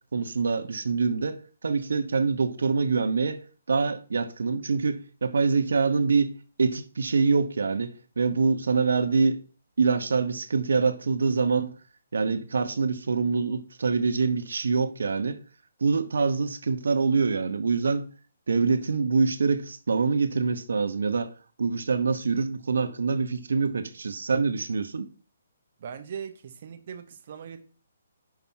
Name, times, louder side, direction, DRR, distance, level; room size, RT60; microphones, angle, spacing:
voice 1, 0.0-3.4 3.7-9.4 9.8-11.8 12.1-15.4 15.8-18.1 18.5-21.3 21.6-25.1, right 4 dB, 80° right, 1.0 m, -25 dB
voice 2, 25.8-27.6, right 7 dB, 45° right, 0.7 m, -39 dB
5.9 x 5.8 x 5.6 m
hypercardioid pair, 165°, 0 cm